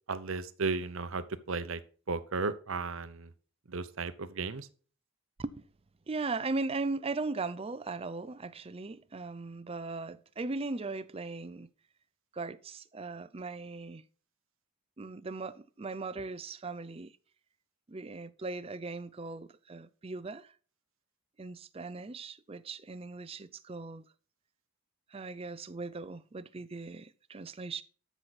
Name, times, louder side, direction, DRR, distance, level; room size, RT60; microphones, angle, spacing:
voice 1, 0.1-1.8 2.1-3.3 3.7-4.7, right 4 dB, 65° right, 0.8 m, -34 dB
voice 2, 6.1-11.7 12.3-14.0 15.0-17.1 17.9-20.5 21.4-24.0 25.1-27.8, right 3 dB, 25° right, 0.4 m, -38 dB
12.5 x 6.0 x 4.1 m
head